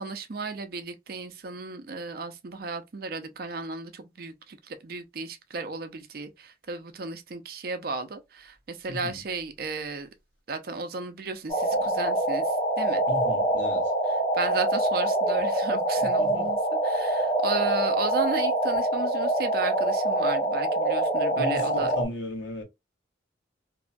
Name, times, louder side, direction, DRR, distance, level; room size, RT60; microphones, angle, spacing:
voice 1, 0.0-10.1 10.5-12.4 12.8-13.0 14.3-16.6 16.8-21.9, right 3 dB, 55° right, 0.5 m, -34 dB
voice 2, 8.9-9.2 11.7-11.9 13.1-13.9 16.0-16.5 21.4-22.6, left 1 dB, 90° left, 1.0 m, -35 dB
sound 1, 11.5-22.1, right 1 dB, 30° left, 1.1 m, -25 dB
2.6 x 2.2 x 2.5 m
head